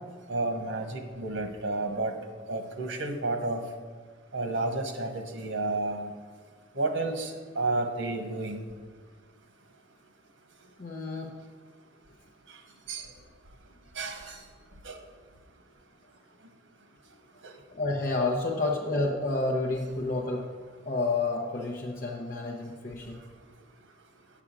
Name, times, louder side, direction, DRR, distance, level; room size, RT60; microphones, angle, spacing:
voice 1, 0.3-2.1 2.5-3.6 4.3-6.1 6.7-8.6 12.9-13.1 14.0-14.4 14.8-15.0 17.4-17.5, right 2 dB, 85° right, 5 dB, 1.2 m, -31 dB
voice 2, 10.8-11.3 13.0-13.1 17.7-20.5 20.9-23.2, left 2 dB, 45° left, -2 dB, 0.9 m, -30 dB
8.6 x 4.9 x 7.3 m, 1.5 s
head